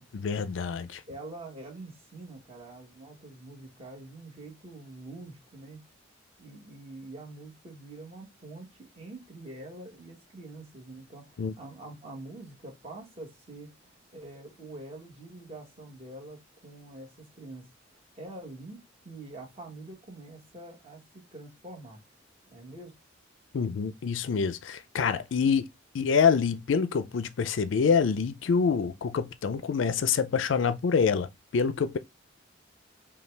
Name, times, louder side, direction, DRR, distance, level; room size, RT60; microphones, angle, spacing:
voice 1, 0.1-1.0 11.4-11.5 23.5-25.7 25.9-32.0, left 6 dB, 70° left, 0.4 m, -26 dB
voice 2, 1.1-5.8 6.4-17.7 18.2-22.0 22.5-22.9, right 2 dB, 30° right, 1.5 m, -45 dB
5.4 x 2.3 x 3.3 m
head